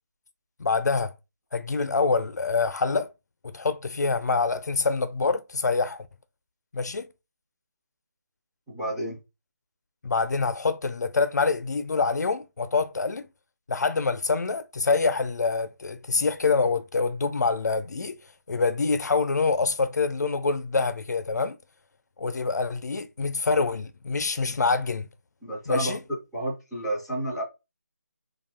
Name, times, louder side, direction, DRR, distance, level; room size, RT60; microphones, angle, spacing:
voice 1, 0.6-1.1 1.5-3.1 3.4-6.1 6.7-7.1 10.0-13.3 13.7-18.2 18.5-21.6 22.2-25.1 25.7-26.0, left 4 dB, 85° left, 0.5 m, -25 dB
voice 2, 8.7-9.2 25.4-27.4, right 1 dB, ahead, 0.4 m, -31 dB
2.7 x 2.3 x 3.3 m
figure-of-eight pair, 175°, 9 cm